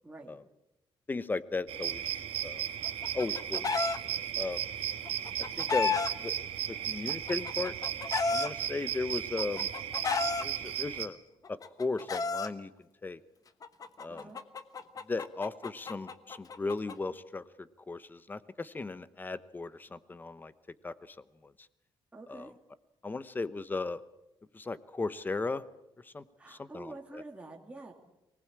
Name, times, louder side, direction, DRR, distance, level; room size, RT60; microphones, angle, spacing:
voice 1, 0.0-0.4 14.1-14.4 22.1-22.5 26.4-27.9, right 2 dB, 10° right, 0 dB, 2.5 m, -47 dB
voice 2, 1.1-2.6 3.1-3.9 4.3-4.6 5.6-7.7 8.3-9.7 10.4-11.2 11.5-12.7 13.0-13.2 14.0-14.3 15.0-20.5 20.8-21.5 22.3-22.5 23.0-24.0 24.5-25.6 26.0-27.2, left 3 dB, 20° left, 15 dB, 0.9 m, -36 dB
sound 1, 1.7-11.1, right 10 dB, 90° right, 1.6 m, -35 dB
Chicken rooster, 2.8-4.0 5.1-6.1 7.1-8.5 9.4-10.4 11.4-12.5 13.6-16.9, left 4 dB, 40° left, 1.2 m, -32 dB
24.0 x 19.5 x 8.7 m, 0.92 s
wide cardioid pair, 155°, 10 cm